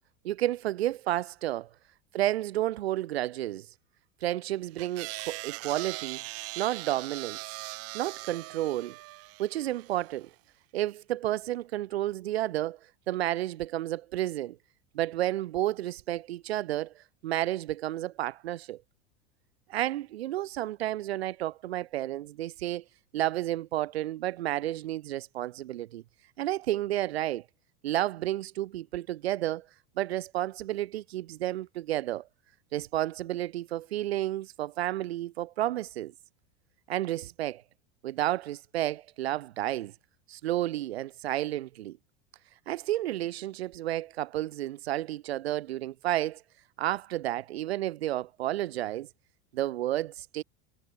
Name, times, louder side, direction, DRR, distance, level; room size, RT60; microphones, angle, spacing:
voice 1, 0.2-1.7 2.1-3.7 4.2-6.2 6.6-7.6 7.9-8.9 9.4-10.3 10.7-12.8 13.1-14.6 14.9-18.8 19.7-22.8 23.1-26.0 26.4-27.4 27.8-29.7 30.0-32.2 32.7-36.1 36.9-37.6 38.0-39.9 40.3-42.0 42.7-46.4 46.8-49.1 49.5-50.4, right 14 dB, 90° right, 5.9 m, -31 dB
sound 1, 4.8-10.1, right 24 dB, 50° right, 5.7 m, -40 dB
supercardioid pair, 135°, 30 cm